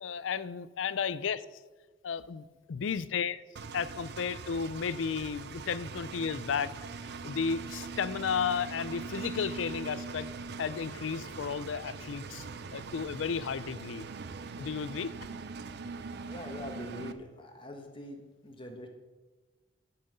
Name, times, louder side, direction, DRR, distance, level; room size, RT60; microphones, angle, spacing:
voice 1, 0.0-1.4 2.0-3.4 3.7-6.7 7.0-10.3 10.6-12.5 12.7-14.1 14.6-15.1, left 6 dB, 90° left, 17 dB, 0.5 m, -33 dB
Engine, 3.6-17.1, right 4 dB, 60° right, 0.6 m, -42 dB
voice 2, 16.3-18.9, left 1 dB, 30° left, 3 dB, 1.4 m, -43 dB
11.0 x 5.7 x 6.7 m, 1.3 s
head